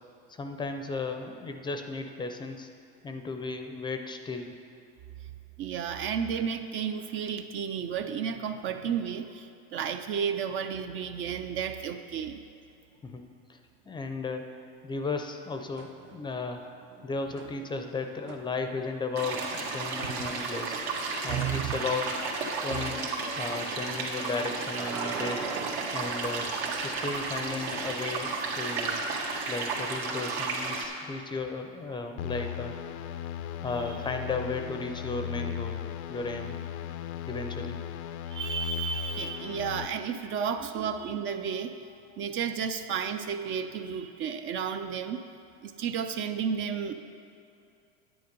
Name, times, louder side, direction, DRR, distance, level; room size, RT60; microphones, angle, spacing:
voice 1, 0.3-2.7 3.0-4.5 13.0-13.2 13.5-13.6 13.9-20.8 21.2-22.2 22.6-23.1 23.4-25.5 25.9-26.5 26.8-29.0 29.5-32.7 33.6-35.8 36.1-36.6 37.3-37.8 40.1-40.7, left 3 dB, 15° left, 6 dB, 0.5 m, -35 dB
voice 2, 5.6-12.4 20.0-20.1 21.3-21.8 22.7-23.2 38.3-41.8 42.1-45.3 45.6-46.9, right 7 dB, 40° right, 8 dB, 0.4 m, -32 dB
sound 1, 15.8-16.4 16.7-19.1 20.7-20.9 24.3-26.8 29.1-29.2, right 5 dB, 60° right, 1.2 m, -42 dB
sound 2, 19.2-30.8, right 4 dB, 75° right, 2.0 m, -33 dB
sound 3, 32.2-39.9, left 10 dB, 85° left, 0.6 m, -37 dB
9.5 x 9.3 x 5.2 m, 2.6 s
supercardioid pair, 135°, 32 cm